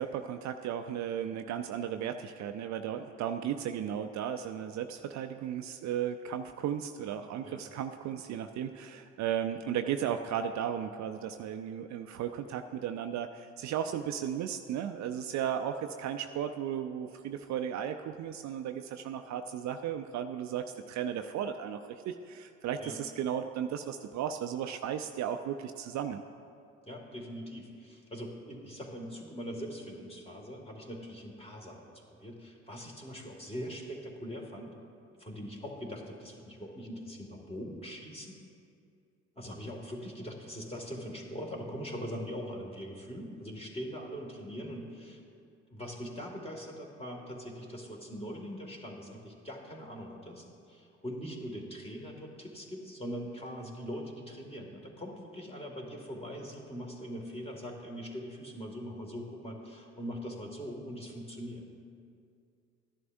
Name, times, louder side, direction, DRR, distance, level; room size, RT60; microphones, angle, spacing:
voice 1, 0.0-26.2, right 9 dB, 50° right, 7 dB, 0.5 m, -35 dB
voice 2, 26.9-34.7 35.2-38.3 39.4-45.2 45.7-61.7, equal, 15° left, 0 dB, 2.1 m, -42 dB
13.5 x 11.0 x 2.6 m, 2.4 s
hypercardioid pair, 50°, 36 cm